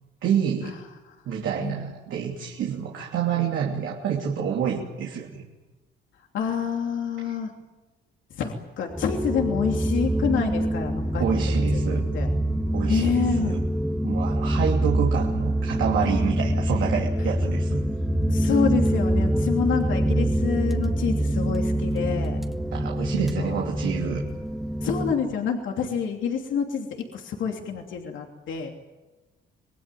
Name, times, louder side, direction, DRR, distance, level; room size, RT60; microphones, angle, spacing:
voice 1, 0.2-0.7 1.3-5.4 7.2-7.4 11.2-12.0 12.7-13.6 14.0-17.8 22.7-24.2, right 8 dB, 75° right, -1 dB, 3.1 m, -28 dB
voice 2, 6.3-7.5 8.3-11.8 12.1-12.3 12.9-13.6 18.3-22.4 23.2-23.6 24.8-26.9 27.1-28.7, left 6 dB, 75° left, 2 dB, 3.0 m, -27 dB
sound 1, 8.9-25.1, right 1 dB, ahead, 1.9 m, -25 dB
26.5 x 20.0 x 9.3 m, 1.1 s
cardioid pair, 90°, 20 cm